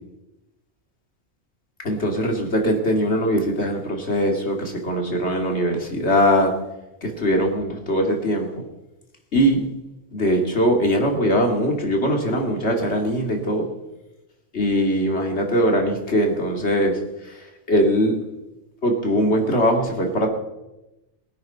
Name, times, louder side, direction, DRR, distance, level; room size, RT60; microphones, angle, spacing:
voice 1, 1.8-6.5 7.0-8.5 9.3-9.6 10.1-13.7 14.5-17.0 17.7-18.2 18.8-20.3, equal, 55° left, 2 dB, 2.7 m, -21 dB
21.0 x 9.2 x 5.6 m, 0.99 s
omnidirectional pair, 1.3 m